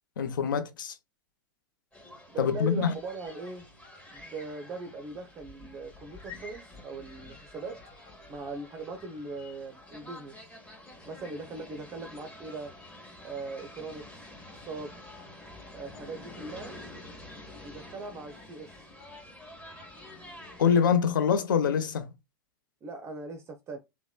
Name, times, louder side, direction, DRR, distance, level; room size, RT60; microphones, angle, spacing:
voice 1, 0.2-0.9 2.4-2.9 20.6-22.1, left 7 dB, 75° left, 0.5 m, -25 dB
sound 1, 1.9-20.8, left 2 dB, 10° left, 0.9 m, -48 dB
voice 2, 2.3-3.7 4.1-7.8 8.3-10.5 11.0-12.7 13.2-14.3 14.6-15.0 15.7-16.8 17.6-18.9 22.8-23.8, right 3 dB, 25° right, 0.5 m, -40 dB
2.9 x 2.1 x 2.2 m
figure-of-eight pair, 90°, 11 cm